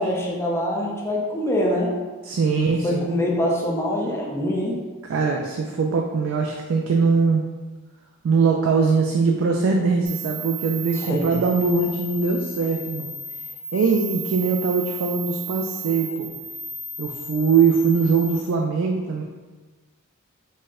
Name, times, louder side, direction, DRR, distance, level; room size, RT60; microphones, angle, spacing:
voice 1, 0.0-1.9 2.4-4.8 10.9-11.2, left 1 dB, 10° left, -3 dB, 0.6 m, -24 dB
voice 2, 2.3-3.1 5.1-7.4 8.2-13.1 13.7-16.3 17.0-19.2, right 5 dB, 65° right, 1 dB, 0.3 m, -21 dB
sound 1, 10.1-18.4, right 2 dB, 45° right, 0.8 m, -34 dB
4.2 x 2.1 x 3.6 m, 1.3 s
head